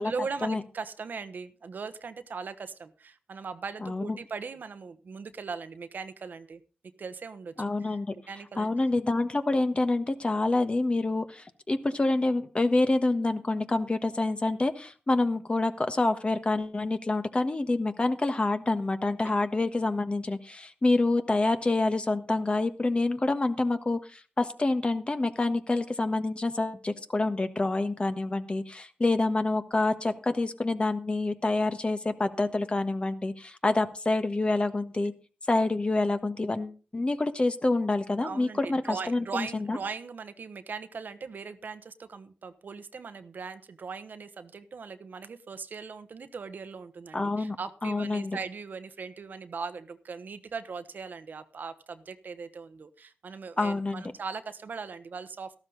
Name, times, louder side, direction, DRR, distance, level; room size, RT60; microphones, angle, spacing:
voice 1, 0.0-6.6 7.0-7.5 7.8-8.0 8.3-8.7 38.2-55.6, right 5 dB, 70° right, 11 dB, 1.1 m, -39 dB
voice 2, 3.8-4.2 7.6-8.1 8.6-35.1 35.5-39.8 47.1-47.6 47.8-48.4 53.6-54.0, left 2 dB, 35° left, 9 dB, 1.4 m, -27 dB
13.0 x 12.5 x 4.0 m, 0.35 s
cardioid pair, 60°, 3 cm